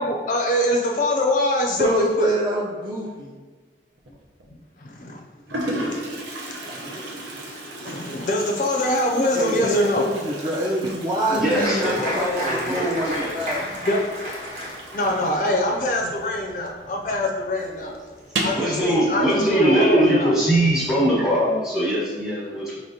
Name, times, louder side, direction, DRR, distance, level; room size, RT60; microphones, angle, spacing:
voice 1, 0.0-2.3 4.8-5.2 5.5-6.2 6.6-7.2 7.8-10.1 13.8-14.0 14.9-18.0 18.4-18.5 18.8-19.2 19.5-20.3, left 1 dB, 45° left, 0 dB, 0.4 m, -24 dB
voice 2, 1.7-3.3 9.3-13.6, equal, 25° right, -4 dB, 0.4 m, -25 dB
Toilet flush, 4.0-4.5 5.2-5.3 5.5-16.8 17.0-17.1 17.4-17.5 18.2-18.7, right 1 dB, 90° right, 0.7 m, -35 dB
voice 3, 11.3-13.3 18.5-22.8, right 1 dB, 5° right, -8 dB, 1.1 m, -22 dB
Applause, 11.4-18.5 18.8-19.5 19.9-20.0 20.3-20.8, equal, 45° right, 1.1 m, -33 dB
4.9 x 3.0 x 2.7 m, 1.4 s
head